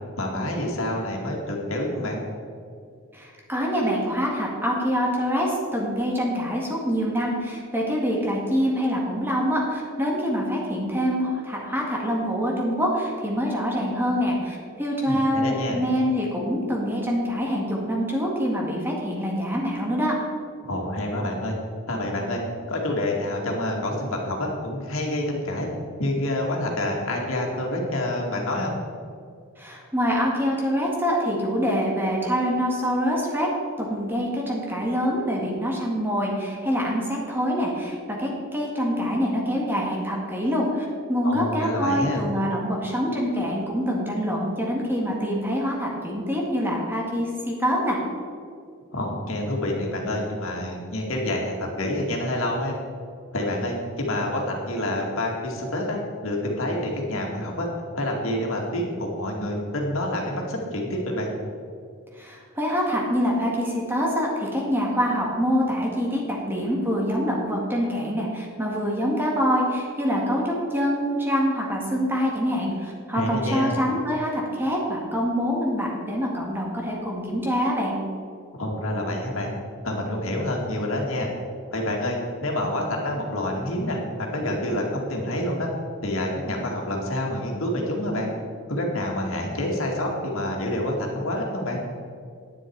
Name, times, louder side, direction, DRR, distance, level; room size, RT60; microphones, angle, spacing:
voice 1, 0.2-2.2 15.0-15.8 20.6-21.6 21.9-22.4 22.7-25.7 26.0-28.7 41.2-42.2 48.9-52.7 53.3-57.7 57.9-61.3 73.1-73.8 78.5-79.5 79.8-81.3 81.7-84.0 84.3-85.7 86.0-88.3 88.7-91.8, left 1 dB, 75° left, -1 dB, 2.1 m, -27 dB
voice 2, 3.1-20.1 29.6-33.5 33.8-48.0 62.1-78.0, equal, 10° right, -2 dB, 1.8 m, -25 dB
10.5 x 9.9 x 4.7 m, 2.4 s
head